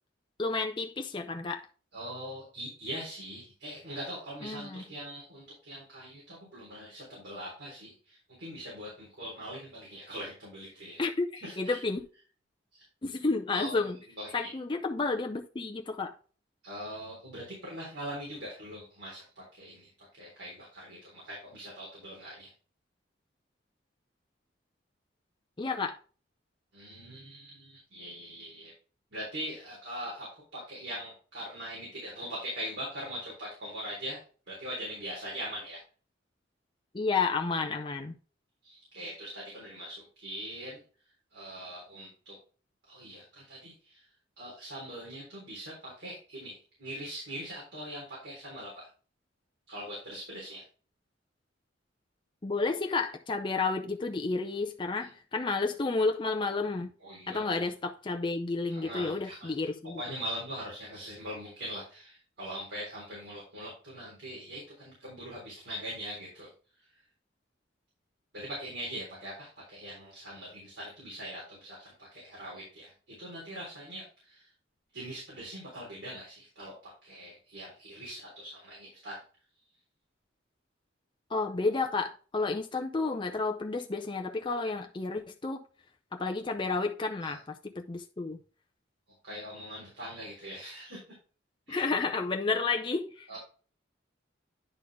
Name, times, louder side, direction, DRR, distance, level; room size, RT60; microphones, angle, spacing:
voice 1, 0.4-1.7 4.4-4.8 11.0-12.0 13.0-14.0 14.3-16.1 25.6-26.0 36.9-38.2 52.4-56.9 57.3-60.0 81.3-85.6 86.1-88.4 91.7-93.3, left 3 dB, 25° left, 0.6 m, -31 dB
voice 2, 1.9-11.0 11.4-11.8 12.7-12.8 13.5-13.9 14.2-14.6 16.6-22.5 26.7-28.7 29.1-34.2 34.5-35.8 38.6-40.8 41.3-42.4 42.9-44.0 44.4-48.9 49.7-50.6 55.0-55.1 57.0-57.6 58.7-59.5 60.0-66.5 68.3-74.5 74.9-76.7 77.0-79.2 87.2-87.4 89.2-91.0 91.7-91.9 93.3-93.4, equal, 70° right, 3.7 m, -42 dB
10.0 x 4.1 x 3.4 m
head